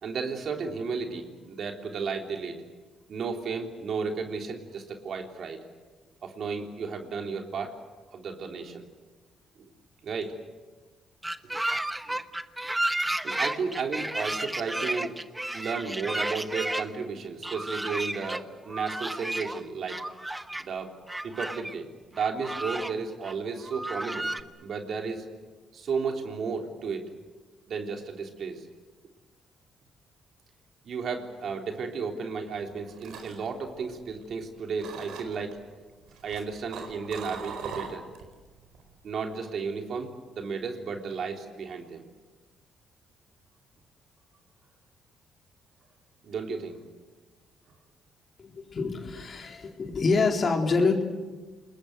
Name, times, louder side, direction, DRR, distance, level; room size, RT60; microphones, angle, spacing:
voice 1, 0.0-2.6 3.1-5.6 6.2-7.8 8.1-8.9 9.6-9.7 10.0-10.4 12.1-12.2 13.2-15.2 15.5-20.0 20.6-20.9 21.2-24.3 24.6-25.3 25.7-27.0 27.7-28.7 30.8-35.6 36.2-38.1 39.0-42.0 46.2-46.8, right 5 dB, 60° right, 3 dB, 3.5 m, -33 dB
sound 1, 11.2-16.8 17.4-18.4 18.7-19.6 19.9-20.6 21.1-21.7 22.2-22.9 23.2-23.3 23.6-24.4, right 1 dB, 10° right, 1.1 m, -32 dB
sound 2, 32.7-34.4 34.8-35.5 36.1-38.3 38.7-39.0, right 6 dB, 85° right, 4.5 m, -40 dB
voice 2, 48.4-51.0, left 4 dB, 45° left, 3 dB, 3.8 m, -26 dB
29.0 x 20.5 x 8.1 m, 1.3 s
cardioid pair, 90°, 0 cm